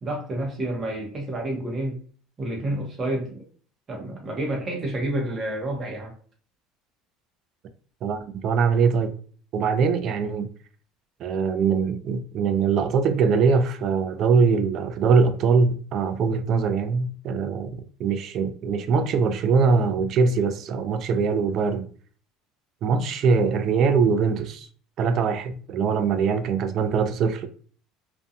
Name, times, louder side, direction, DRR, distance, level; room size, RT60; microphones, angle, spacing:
voice 1, 0.0-2.0 2.4-3.4 3.9-6.1, right 1 dB, 20° right, 0.7 m, -29 dB
voice 2, 8.0-9.1 9.5-10.5 11.2-17.7 18.0-21.9 22.8-24.7 25.0-27.5, right 5 dB, 40° right, 0.3 m, -22 dB
2.4 x 2.2 x 2.7 m
cardioid pair, 165°, 0 cm